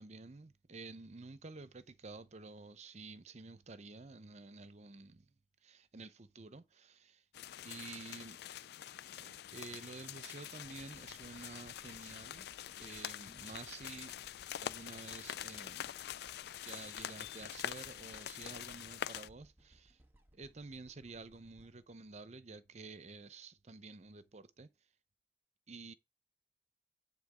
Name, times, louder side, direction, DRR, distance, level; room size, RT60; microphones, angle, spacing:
voice 1, 0.0-5.3 5.6-7.2 7.6-8.4 9.1-12.5 12.8-14.1 14.6-15.9 16.6-20.0 20.3-24.7 25.7-25.9, right 3 dB, 40° right, 0.7 m, -50 dB
sound 1, 7.3-19.3, left 10 dB, 60° left, 0.3 m, -45 dB
sound 2, 10.6-22.8 23.4-23.5, right 1 dB, 10° right, 1.4 m, -66 dB
9.6 x 3.6 x 4.9 m
head